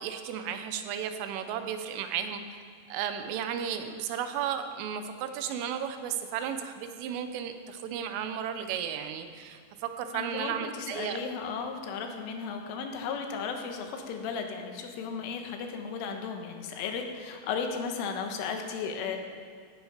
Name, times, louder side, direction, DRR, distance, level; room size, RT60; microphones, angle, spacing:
voice 1, 0.0-2.4 2.9-11.2, right 8 dB, 85° right, 8 dB, 3.5 m, -34 dB
voice 2, 10.1-19.2, left 5 dB, 85° left, 4 dB, 3.7 m, -35 dB
17.0 x 11.5 x 5.1 m, 2.1 s
omnidirectional pair, 5.6 m